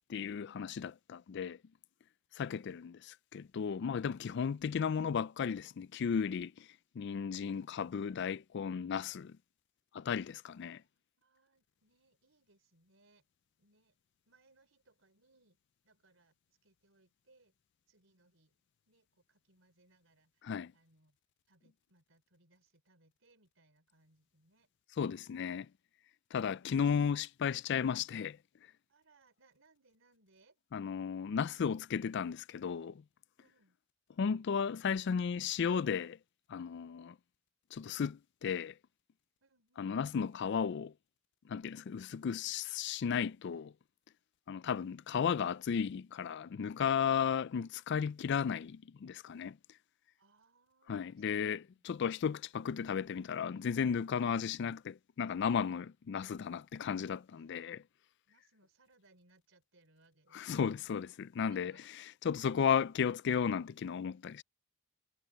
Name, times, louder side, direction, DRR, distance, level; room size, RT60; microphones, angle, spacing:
voice 1, 0.1-1.6 2.4-3.0 3.3-6.7 7.0-9.4 9.9-10.8 20.4-20.7 25.0-25.7 26.3-28.4 30.7-33.0 34.2-36.2 36.5-37.2 37.7-38.7 39.8-40.9 41.5-43.7 44.5-49.6 50.9-57.8 60.3-61.7 62.2-64.4, left 7 dB, 60° left, 0.4 m, -34 dB
voice 2, 10.9-13.3 13.6-13.9 14.2-15.6 15.8-17.6 17.9-18.6 18.9-21.2 21.5-24.7 28.9-30.6 33.4-33.8 39.4-39.9 50.2-51.9 54.1-54.2 57.3-57.9 58.3-60.7 61.5-61.9, right 3 dB, 80° right, 3.7 m, -70 dB
head